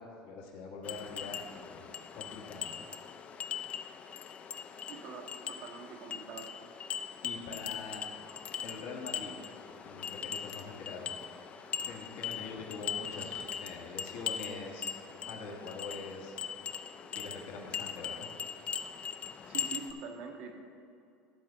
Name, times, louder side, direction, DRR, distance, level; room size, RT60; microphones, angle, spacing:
voice 1, 0.0-1.9 2.1-2.9 7.2-8.3 8.6-9.3 9.8-11.1 11.8-14.9 15.3-16.6 17.1-18.3, left 4 dB, 70° left, -1 dB, 1.6 m, -44 dB
sound 1, 0.8-19.9, left 7 dB, 40° left, 0.6 m, -40 dB
voice 2, 4.9-6.5 19.5-20.5, right 5 dB, 65° right, 2 dB, 1.5 m, -44 dB
12.0 x 4.4 x 6.7 m, 2.6 s
supercardioid pair, 100°, 4 cm